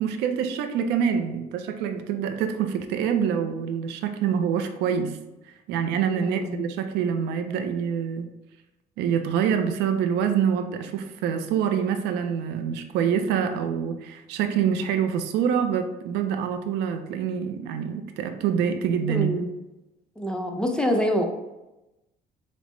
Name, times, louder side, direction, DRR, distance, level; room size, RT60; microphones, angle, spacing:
voice 1, 0.0-5.2 5.7-8.3 9.0-19.3, right 8 dB, 85° right, 7 dB, 0.4 m, -26 dB
voice 2, 6.1-6.6 19.1-19.5 20.2-21.2, equal, 5° left, 2 dB, 0.5 m, -26 dB
5.1 x 2.1 x 3.1 m, 0.97 s
cardioid pair, 110°, 17 cm